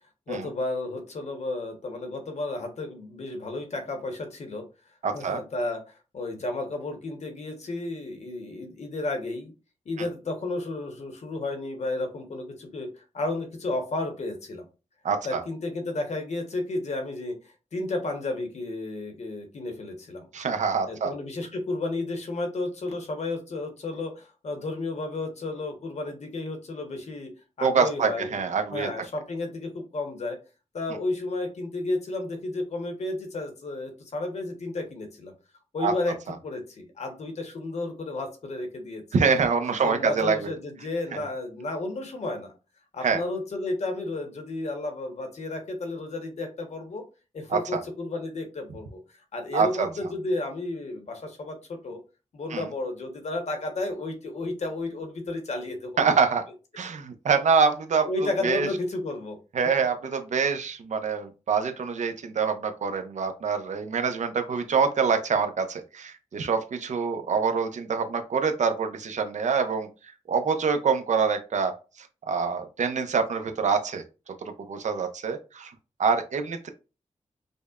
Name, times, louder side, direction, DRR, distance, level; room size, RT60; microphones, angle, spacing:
voice 1, 0.3-4.6 5.1-9.5 9.8-14.7 15.2-20.3 20.9-27.3 27.6-28.4 28.7-30.4 30.7-35.3 35.7-36.1 36.4-39.0 39.6-42.5 42.9-47.0 47.3-52.0 52.3-55.9 58.0-59.4, left 2 dB, 65° left, 4 dB, 1.0 m, -32 dB
voice 2, 5.0-5.4 15.0-15.4 20.3-21.1 27.6-28.9 35.8-35.9 39.1-40.5 41.1-41.2 43.0-43.2 47.5-47.8 49.5-49.9 52.5-52.6 56.0-56.4 56.7-58.1 58.4-58.7 59.5-69.9 70.3-71.7 72.0-74.0 74.7-75.7 76.0-76.7, right 5 dB, 75° right, 7 dB, 0.5 m, -25 dB
5.3 x 2.1 x 2.3 m, 0.32 s
wide cardioid pair, 125°, 13 cm